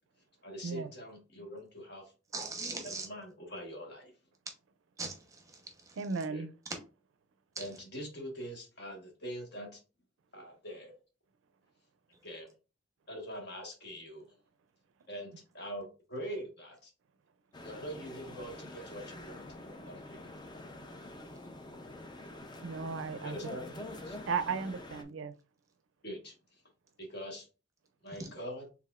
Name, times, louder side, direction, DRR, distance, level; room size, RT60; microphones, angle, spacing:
voice 1, 0.4-2.1 2.8-4.1 6.3-6.4 7.6-9.8 10.3-10.9 12.2-12.5 13.1-14.3 15.1-16.9 17.6-20.4 23.2-24.2 26.0-26.3 27.0-27.5 28.0-28.7, equal, 55° left, 1.4 m, -43 dB
voice 2, 2.3-3.1 5.0-6.0 7.6-7.7 28.1-28.3, right 3 dB, 15° right, 0.8 m, -41 dB
voice 3, 6.0-6.5 22.6-23.4 24.3-25.3, right 5 dB, 80° right, 0.4 m, -35 dB
sound 1, 17.5-25.0, left 1 dB, 20° left, 0.5 m, -46 dB
4.7 x 3.5 x 2.4 m
head